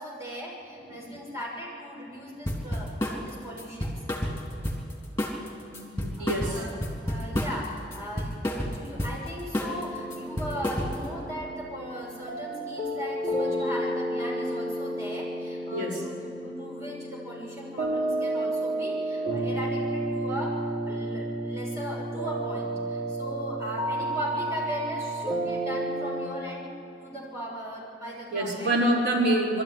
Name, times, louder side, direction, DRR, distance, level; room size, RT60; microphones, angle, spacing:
voice 1, 0.0-3.9 6.0-6.8 7.0-26.7 27.0-28.7, equal, 15° right, -5 dB, 6.3 m, -38 dB
sound 1, 2.5-3.2 3.6-4.9 5.2-5.5 5.7-7.7 7.9-9.2 9.5-9.8 10.1-11.1, equal, 15° left, 3.4 m, -30 dB
voice 2, 5.6-6.6 15.7-16.0 28.3-29.6, right 1 dB, 85° right, -5 dB, 4.8 m, -26 dB
sound 2, 9.6-26.3, right 1 dB, 35° right, 2.7 m, -31 dB
22.0 x 13.5 x 9.8 m, 2.6 s
head